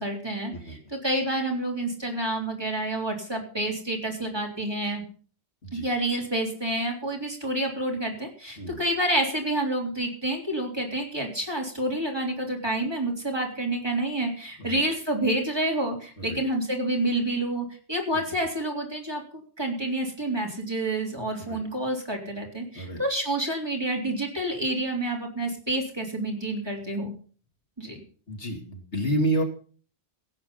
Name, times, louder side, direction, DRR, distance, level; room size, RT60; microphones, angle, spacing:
voice 1, 0.0-5.0 5.7-19.2 19.6-27.1 27.8-28.0, right 1 dB, 20° right, 0 dB, 3.6 m, -28 dB
voice 2, 28.3-29.4, right 1 dB, 85° left, 3 dB, 3.0 m, -29 dB
16.5 x 8.7 x 5.7 m, 0.41 s
omnidirectional pair, 1.1 m